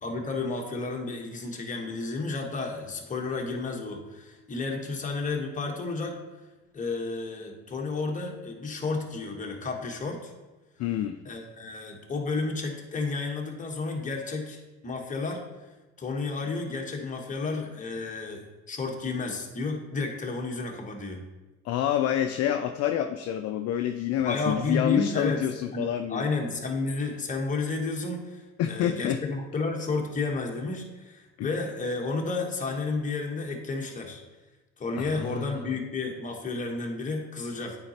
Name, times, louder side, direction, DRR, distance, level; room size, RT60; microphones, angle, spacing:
voice 1, 0.0-6.2 6.7-10.3 11.2-15.4 16.0-21.2 24.2-25.4 25.7-34.2 34.8-37.8, left 3 dB, 20° left, 1 dB, 1.1 m, -32 dB
voice 2, 10.8-11.1 21.6-26.3 28.6-29.2 31.4-31.5 35.0-35.6, left 10 dB, 50° left, 7 dB, 0.4 m, -27 dB
8.6 x 4.1 x 2.9 m, 1.1 s
supercardioid pair, 90°, 34 cm